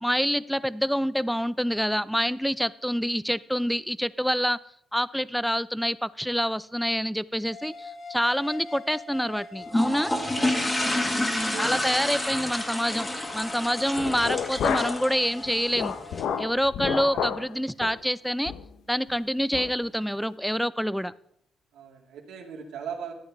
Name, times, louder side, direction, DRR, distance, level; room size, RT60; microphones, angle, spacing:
voice 1, 0.0-4.6 4.9-10.1 11.2-13.1 13.3-16.0 16.4-18.5 18.9-21.1, equal, ahead, 19 dB, 0.4 m, -27 dB
sound 1, 7.4-16.5, left 3 dB, 50° left, 1.2 m, -43 dB
sound 2, 9.7-16.2, left 1 dB, 15° left, 1.6 m, -29 dB
voice 2, 10.3-11.9 14.3-14.5 17.1-17.5 21.7-23.1, right 7 dB, 85° right, 1 dB, 2.1 m, -40 dB
sound 3, 14.0-15.1 15.4-17.5 17.8-18.0 18.5-18.7 19.1-19.2 19.5-19.7, left 7 dB, 75° left, 0.7 m, -30 dB
13.0 x 9.5 x 3.5 m, 0.71 s
cardioid pair, 90°, 0 cm